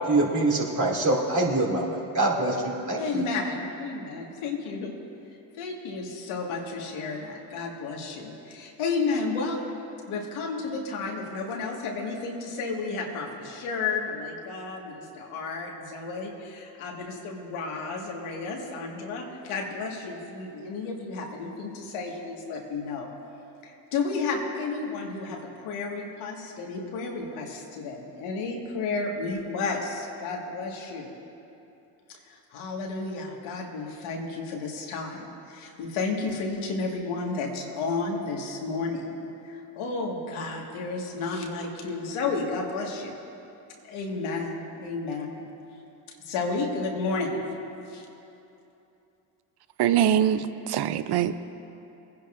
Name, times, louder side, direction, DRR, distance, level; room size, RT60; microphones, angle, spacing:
voice 1, 0.1-3.2, right 2 dB, 35° right, -2 dB, 2.6 m, -25 dB
voice 2, 3.0-4.9 5.3-9.6 10.1-23.1 23.6-31.1 32.3-43.1 43.8-45.5 46.2-47.4 47.9-48.1, left 4 dB, 80° left, 0 dB, 1.8 m, -32 dB
voice 3, 49.8-51.4, right 10 dB, 55° right, 12 dB, 0.6 m, -23 dB
21.0 x 10.5 x 2.5 m, 2.9 s
supercardioid pair, 60°, 49 cm